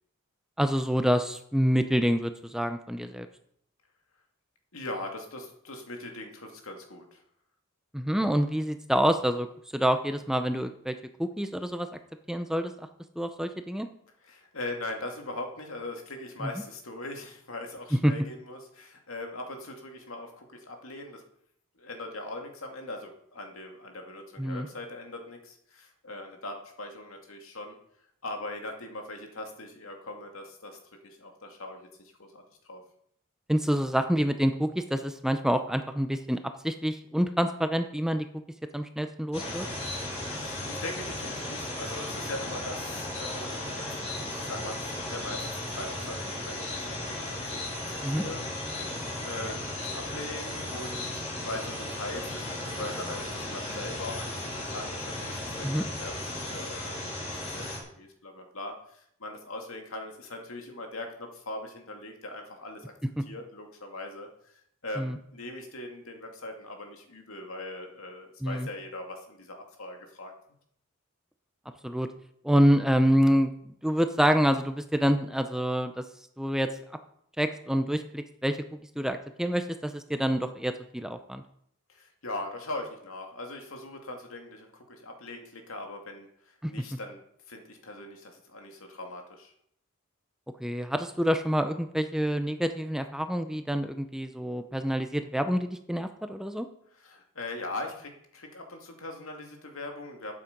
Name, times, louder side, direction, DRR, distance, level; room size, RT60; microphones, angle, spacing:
voice 1, 0.6-3.3 7.9-9.5 9.7-10.9 11.2-11.9 12.3-12.7 13.2-13.9 18.0-18.1 24.4-24.7 33.5-36.4 36.6-38.3 38.7-39.7 48.0-48.2 55.6-55.8 65.0-65.2 68.4-68.7 71.8-72.1 72.4-73.5 73.8-76.0 76.4-76.7 77.4-78.6 79.0-81.4 86.6-86.7 90.6-96.7, equal, ahead, 8 dB, 0.6 m, -27 dB
voice 2, 4.7-7.2 14.2-21.2 21.8-27.8 28.2-32.8 40.2-47.6 47.9-62.9 63.3-70.3 81.9-89.5 96.9-100.3, left 2 dB, 80° left, 3 dB, 2.4 m, -41 dB
sound 1, 39.3-57.8, left 1 dB, 30° left, 3.1 m, -35 dB
12.5 x 8.6 x 5.3 m, 0.69 s
head